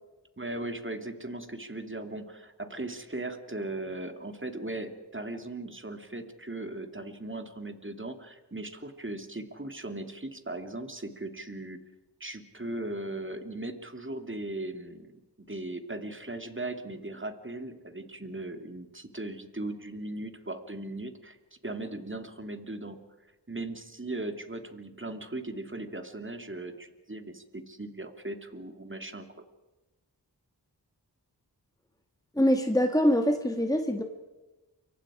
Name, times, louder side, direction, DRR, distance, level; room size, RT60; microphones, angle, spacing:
voice 1, 0.4-11.8 12.2-21.4 21.6-23.0 23.5-29.3, right 2 dB, 30° right, 7 dB, 2.6 m, -38 dB
voice 2, 32.4-34.0, equal, 10° left, 5 dB, 1.9 m, -24 dB
29.0 x 24.0 x 5.0 m, 1.1 s
wide cardioid pair, 40°, 42 cm